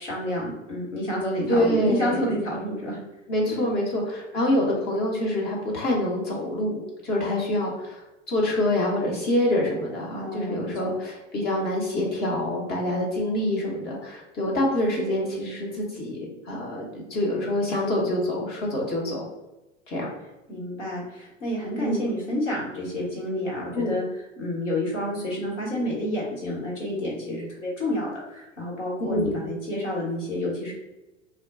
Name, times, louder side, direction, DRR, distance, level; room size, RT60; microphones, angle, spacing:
voice 1, 0.0-3.0 3.5-3.6 10.1-10.9 20.5-24.0 24.4-30.7, left 1 dB, 75° left, -5 dB, 1.3 m, -29 dB
voice 2, 1.5-2.2 3.3-8.0 8.3-19.3 19.9-20.1 21.8-22.0 23.7-23.9 29.0-29.4, left 1 dB, 25° left, -2 dB, 0.7 m, -26 dB
Piano, 15.0-18.4, right 4 dB, 25° right, 0.8 m, -46 dB
2.3 x 2.1 x 3.5 m, 1.0 s
figure-of-eight pair, 90°, 37 cm